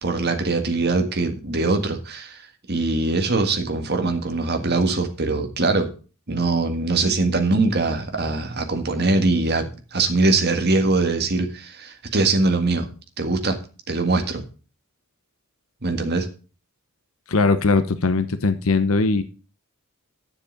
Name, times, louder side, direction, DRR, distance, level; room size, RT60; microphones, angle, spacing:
voice 1, 0.0-2.4 2.7-5.9 6.3-9.7 9.9-12.9 13.2-13.6 13.9-14.4 15.8-16.3, right 3 dB, 50° right, 5 dB, 1.8 m, -22 dB
voice 2, 17.3-19.2, left 3 dB, 70° left, 11 dB, 0.9 m, -20 dB
10.0 x 7.0 x 5.2 m, 0.35 s
head